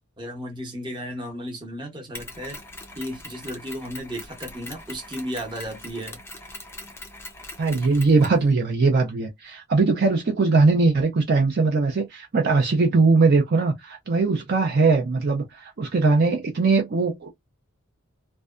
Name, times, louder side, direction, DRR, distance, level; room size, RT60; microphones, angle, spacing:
voice 1, 0.2-2.6 3.0-6.2, equal, 20° right, 0.7 m, -34 dB
Mechanisms, 2.1-8.4, left 2 dB, 10° left, 0.4 m, -41 dB
voice 2, 7.6-17.3, right 3 dB, 45° right, 0.5 m, -20 dB
2.6 x 2.2 x 2.3 m
head